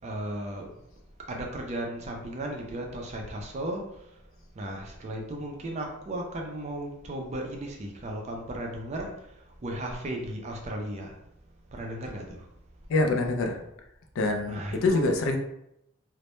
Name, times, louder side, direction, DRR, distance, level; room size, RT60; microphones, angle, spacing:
voice 1, 0.0-0.7 1.3-3.8 4.6-9.1 9.6-11.1 11.7-12.4 14.5-15.1, right 1 dB, 30° right, 1 dB, 0.3 m, -35 dB
voice 2, 12.9-13.6 14.2-15.4, left 2 dB, 65° left, 4 dB, 0.3 m, -25 dB
2.0 x 2.0 x 2.9 m, 0.82 s
head